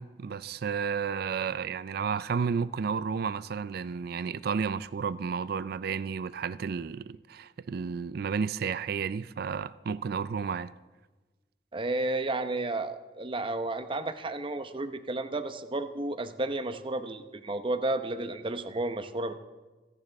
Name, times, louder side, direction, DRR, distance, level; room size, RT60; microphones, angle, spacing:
voice 1, 0.0-10.7, right 6 dB, 60° right, 0.4 m, -32 dB
voice 2, 11.7-19.3, right 2 dB, 30° right, 0.8 m, -32 dB
28.5 x 10.5 x 3.5 m
head